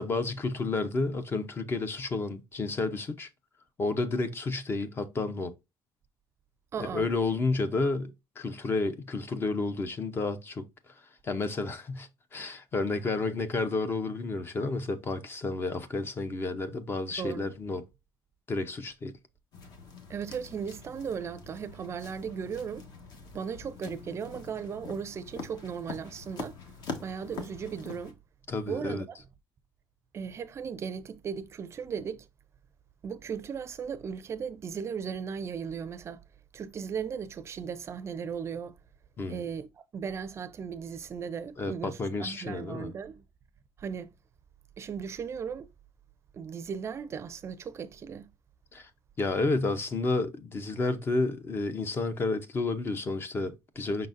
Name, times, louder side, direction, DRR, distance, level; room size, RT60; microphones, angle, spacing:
voice 1, 0.0-3.3 3.8-5.5 6.8-10.6 11.2-17.8 18.5-19.1 28.5-29.0 39.2-39.4 41.6-42.9 48.7-48.9 49.2-54.1, left 3 dB, 25° left, 0.6 m, -31 dB
voice 2, 6.7-7.1 17.2-17.5 20.1-22.9 23.3-26.6 27.0-28.2 28.6-29.2 30.1-32.3 33.0-36.2 36.5-38.8 39.3-43.2 43.8-44.1 44.8-45.7 46.3-48.3, right 6 dB, 35° right, 0.5 m, -37 dB
sound 1, 19.5-28.1, left 4 dB, 55° left, 1.2 m, -44 dB
5.6 x 3.8 x 2.5 m
cardioid pair, 150°, 8 cm